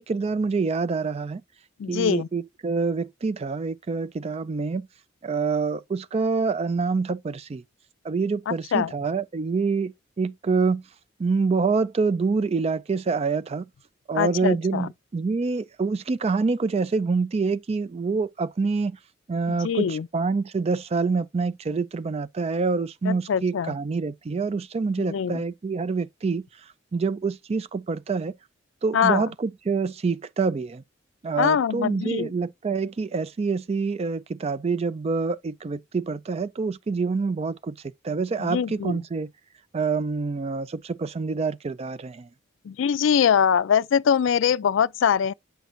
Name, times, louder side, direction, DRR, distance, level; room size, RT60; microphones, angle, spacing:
voice 1, 0.0-1.4 1.9-4.9 5.2-7.6 8.0-10.8 11.2-13.7 14.1-19.0 19.3-26.4 26.9-28.3 28.8-30.8 31.2-37.8 38.0-39.3 39.7-42.3, right 4 dB, 30° right, 0.3 m, -26 dB
voice 2, 1.8-2.3 8.5-8.9 14.2-14.9 19.5-20.1 23.0-23.7 25.0-25.4 28.9-29.2 31.4-32.3 38.4-39.0 42.6-45.3, left 7 dB, 70° left, 0.4 m, -23 dB
8.1 x 5.9 x 2.5 m
head